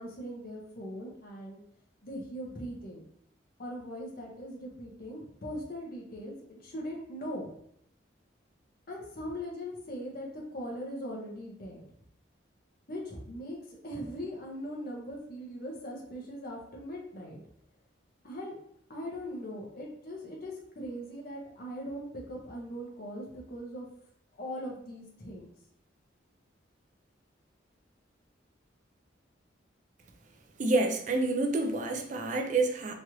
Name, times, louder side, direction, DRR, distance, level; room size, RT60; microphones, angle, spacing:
voice 1, 0.0-1.6 2.0-3.0 3.6-7.5 8.9-11.9 12.9-17.4 18.2-18.6 18.9-23.9 24.3-25.5, equal, 50° left, 0.7 m, -40 dB
voice 2, 30.6-32.9, right 2 dB, 40° right, 0.4 m, -28 dB
3.1 x 2.4 x 2.9 m
head